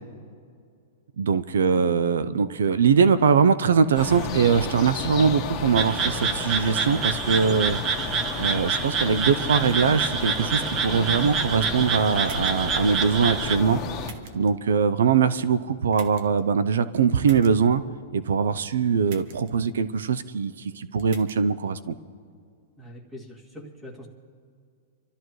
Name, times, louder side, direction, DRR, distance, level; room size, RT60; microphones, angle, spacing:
voice 1, 1.2-13.8 14.3-17.8 18.1-22.0, right 6 dB, 90° right, 14 dB, 0.6 m, -22 dB
sound 1, 3.9-14.1, left 3 dB, 20° left, 1.8 m, -32 dB
sound 2, 5.7-13.6, right 6 dB, 25° right, 0.8 m, -28 dB
sound 3, 12.2-12.7 14.0-14.5 15.9-16.4 17.2-17.5 19.1-19.5 21.0-21.4, right 6 dB, 50° right, 1.3 m, -45 dB
voice 2, 22.8-24.1, left 1 dB, 5° right, -2 dB, 2.3 m, -43 dB
27.5 x 13.0 x 3.1 m, 2.3 s
hypercardioid pair, 150°, 0 cm